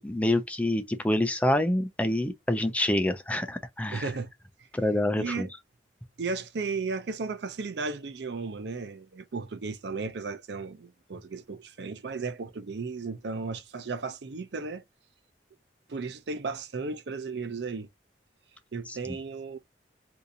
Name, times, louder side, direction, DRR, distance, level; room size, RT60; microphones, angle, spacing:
voice 1, 0.0-4.1 4.7-5.5 18.9-19.1, left 1 dB, 10° left, 0.4 m, -27 dB
voice 2, 3.9-4.3 5.2-5.5 6.2-14.8 15.9-17.9 18.7-19.6, right 4 dB, 75° right, 0.5 m, -35 dB
2.8 x 2.5 x 3.8 m
head